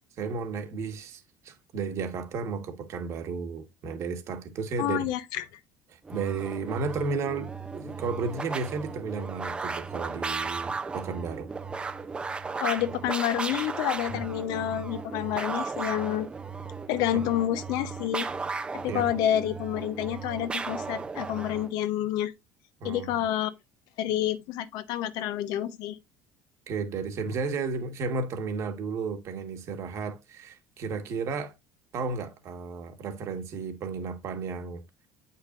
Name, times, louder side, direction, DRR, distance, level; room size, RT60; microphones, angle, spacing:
voice 1, 0.2-5.1 5.9-11.5 14.1-14.2 17.1-17.2 18.8-19.1 22.8-23.2 26.7-31.5 31.9-34.8, right 4 dB, 45° right, 1.4 m, -33 dB
voice 2, 4.8-5.4 12.6-16.3 16.9-18.3 18.7-22.3 22.8-23.5 24.0-26.0, left 12 dB, 70° left, 0.8 m, -29 dB
sound 1, 6.0-21.7, right 4 dB, 15° right, 0.5 m, -35 dB
8.3 x 5.6 x 2.5 m
cardioid pair, 160°, 7 cm